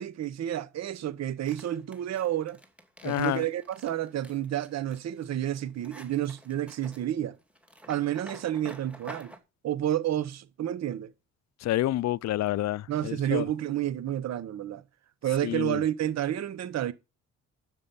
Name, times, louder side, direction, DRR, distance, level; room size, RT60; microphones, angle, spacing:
voice 1, 0.0-2.6 3.0-7.4 7.9-9.3 9.6-11.1 12.9-14.8 15.2-16.9, right 12 dB, 60° right, 0.9 m, -30 dB
sound 1, 1.5-9.4, equal, 5° right, 2.6 m, -50 dB
voice 2, 3.0-3.4 11.6-13.4 15.4-15.8, left 14 dB, 60° left, 0.5 m, -28 dB
9.8 x 7.5 x 5.4 m
cardioid pair, 90°, 30 cm